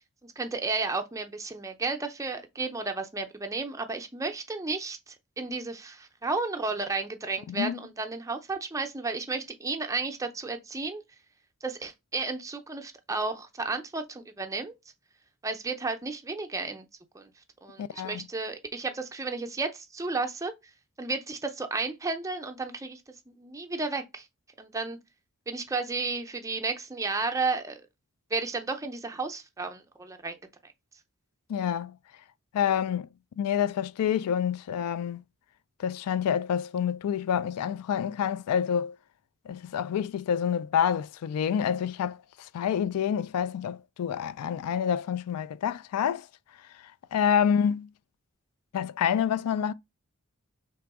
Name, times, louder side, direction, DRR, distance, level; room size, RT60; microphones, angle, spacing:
voice 1, 0.2-11.0 11.6-14.7 15.4-16.9 17.1-17.3 17.6-20.5 21.0-23.0 23.3-24.3 24.6-25.0 25.5-27.9 28.3-30.4 30.6-30.7, right 3 dB, 15° right, 0.5 m, -33 dB
voice 2, 7.5-7.8 17.8-18.2 31.5-32.0 32.5-33.1 33.4-35.2 35.8-39.0 39.5-46.3 46.8-47.9 48.7-49.7, left 8 dB, 85° left, 0.3 m, -28 dB
3.4 x 3.0 x 4.7 m
head